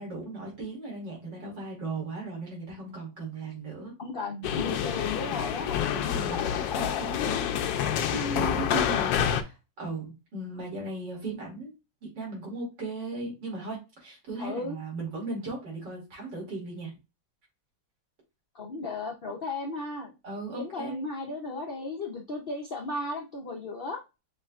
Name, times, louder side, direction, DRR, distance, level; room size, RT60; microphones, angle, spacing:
voice 1, 0.0-3.9 5.9-6.4 6.8-11.7 12.0-16.9 20.2-21.0, right 3 dB, 75° right, -2 dB, 3.1 m, -37 dB
voice 2, 4.0-5.8 6.3-6.8 14.4-14.8 18.5-20.1 20.5-24.0, left 2 dB, 65° left, 1 dB, 0.5 m, -35 dB
sound 1, 4.4-9.4, left 9 dB, 85° left, 1.3 m, -28 dB
6.5 x 3.2 x 2.3 m, 0.27 s
omnidirectional pair, 2.0 m